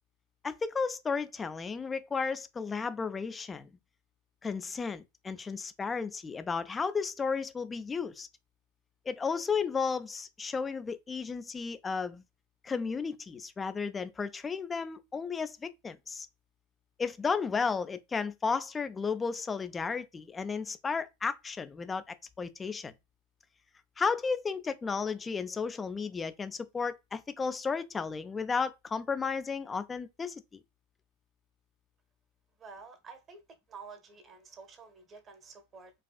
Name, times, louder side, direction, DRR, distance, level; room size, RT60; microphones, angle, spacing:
voice 1, 0.4-3.7 4.4-8.3 9.1-12.2 12.6-16.3 17.0-22.9 24.0-30.6, left 5 dB, 15° left, 0.4 m, -33 dB
voice 2, 32.6-33.4 33.7-35.9, right 5 dB, 25° right, 0.8 m, -50 dB
4.8 x 2.4 x 2.3 m
figure-of-eight pair, 90°, 0 cm